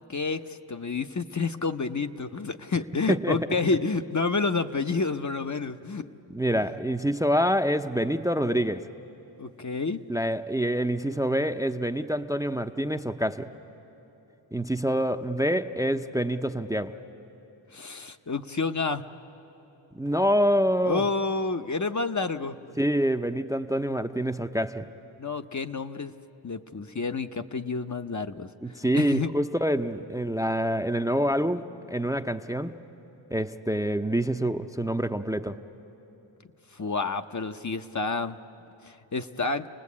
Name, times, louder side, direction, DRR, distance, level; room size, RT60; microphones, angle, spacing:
voice 1, 0.0-6.1 6.5-6.7 9.4-10.0 17.7-19.0 20.8-22.6 25.2-26.1 26.4-28.5 28.9-29.3 36.7-38.4 38.9-39.7, left 4 dB, 35° left, 7 dB, 0.8 m, -29 dB
voice 2, 3.1-3.5 6.3-8.8 10.1-13.5 14.5-17.0 19.9-21.1 22.8-24.9 28.6-32.8 33.3-35.6, equal, 5° right, 7 dB, 0.6 m, -26 dB
29.0 x 19.5 x 8.5 m, 3.0 s
cardioid pair, 45°, 49 cm